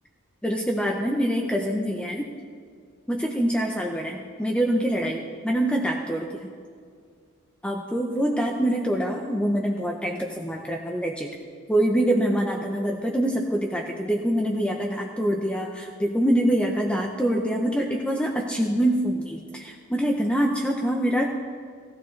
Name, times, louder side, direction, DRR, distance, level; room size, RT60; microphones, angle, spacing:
voice 1, 0.4-2.3 3.1-6.5 7.6-11.3 11.7-21.3, right 1 dB, 5° left, 1 dB, 0.7 m, -25 dB
17.5 x 14.0 x 3.2 m, 2.1 s
head